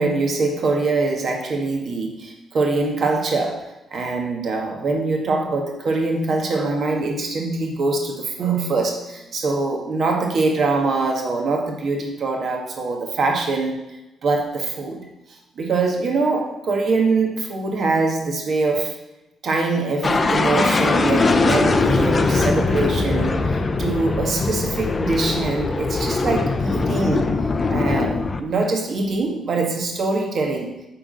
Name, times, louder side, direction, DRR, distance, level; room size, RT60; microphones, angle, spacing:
voice 1, 0.0-13.8 14.2-18.9 19.4-27.3 27.7-30.7, right 3 dB, 45° right, 1 dB, 1.5 m, -23 dB
sound 1, 20.0-28.4, left 3 dB, 25° left, 0.5 m, -21 dB
8.9 x 3.8 x 6.3 m, 0.95 s
cardioid pair, 155°, 0 cm